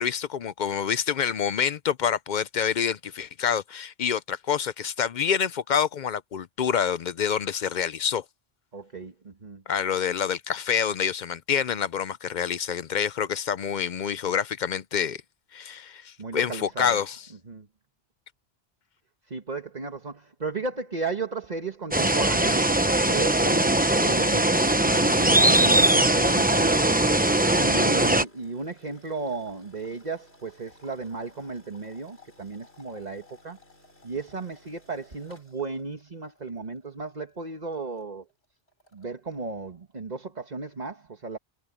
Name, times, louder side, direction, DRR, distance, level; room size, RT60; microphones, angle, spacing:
voice 1, 0.0-8.2 9.7-15.2 15.5-17.2, left 8 dB, 55° left, 0.6 m, -27 dB
voice 2, 8.7-9.6 16.2-17.0 17.5-17.7 19.3-24.5 24.8-26.9 27.3-33.6 34.0-38.2 38.9-41.4, right 4 dB, 45° right, 1.6 m, -35 dB
sound 1, 21.9-28.2, right 1 dB, 10° right, 0.8 m, -21 dB
sound 2, 24.8-37.1 37.4-38.0 38.3-38.4 38.7-39.4, left 2 dB, 80° left, 6.0 m, -52 dB
omnidirectional pair, 1.0 m